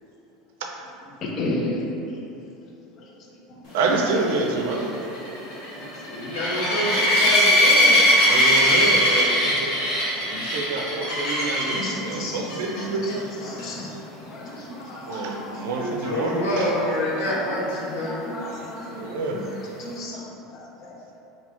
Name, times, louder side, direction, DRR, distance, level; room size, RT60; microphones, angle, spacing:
voice 1, 1.2-2.2 2.9-3.1 3.5-3.8 4.5-4.6 5.3-6.4 11.6-16.2 16.8-16.9 17.3-17.6 18.0-19.5 19.8-21.0, left 1 dB, 40° left, -2 dB, 0.5 m, -34 dB
voice 2, 3.7-5.1 8.2-9.7 10.3-13.3 15.1-16.7 18.9-19.4, right 3 dB, 80° right, 1 dB, 0.4 m, -27 dB
sound 1, 4.0-11.9 12.5-12.8 13.1-13.2 13.6-13.7 17.3-17.4, equal, 60° left, 1.0 m, -20 dB
voice 3, 6.1-8.0 15.7-18.3, equal, 85° left, -7 dB, 1.0 m, -27 dB
2.8 x 2.7 x 3.4 m, 2.9 s
supercardioid pair, 140°, 0 cm